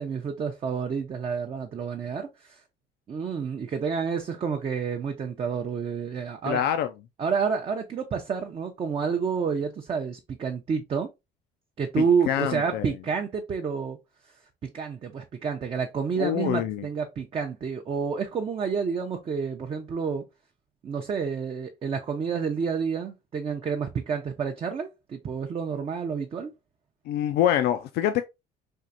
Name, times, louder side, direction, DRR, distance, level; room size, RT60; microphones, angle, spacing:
voice 1, 0.0-2.6 3.1-6.7 7.2-11.1 11.8-14.0 14.7-20.2 20.8-26.5, right 6 dB, 35° right, 0.5 m, -29 dB
voice 2, 6.5-6.9 12.0-12.9 16.2-16.9 27.1-28.2, left 11 dB, 75° left, 0.4 m, -25 dB
4.4 x 2.4 x 2.5 m
cardioid pair, 110°, 17 cm